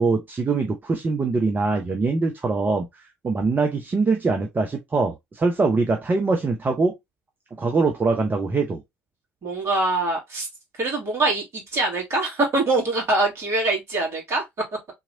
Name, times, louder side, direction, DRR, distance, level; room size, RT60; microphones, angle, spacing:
voice 1, 0.0-2.9 3.2-6.9 7.6-8.8, right 3 dB, 30° right, 0.8 m, -23 dB
voice 2, 9.4-10.5 10.8-14.4, right 2 dB, 45° right, 2.6 m, -23 dB
4.0 x 3.0 x 2.7 m
figure-of-eight pair, 55°, 7 cm